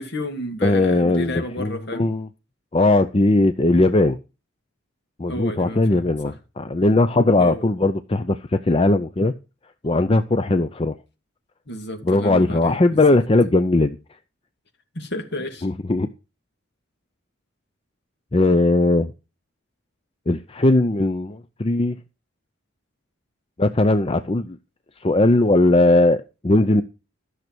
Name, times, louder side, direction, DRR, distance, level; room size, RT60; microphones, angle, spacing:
voice 1, 0.0-2.1 5.3-6.3 7.4-7.6 11.7-12.8 14.9-15.7, left 1 dB, 55° left, 2.7 m, -31 dB
voice 2, 0.6-2.3 2.7-4.2 5.2-9.3 9.8-10.9 12.0-14.0 15.6-16.1 18.3-19.1 20.3-22.0 23.6-24.6 25.0-26.8, left 2 dB, 30° left, 0.6 m, -19 dB
13.5 x 6.6 x 6.2 m
head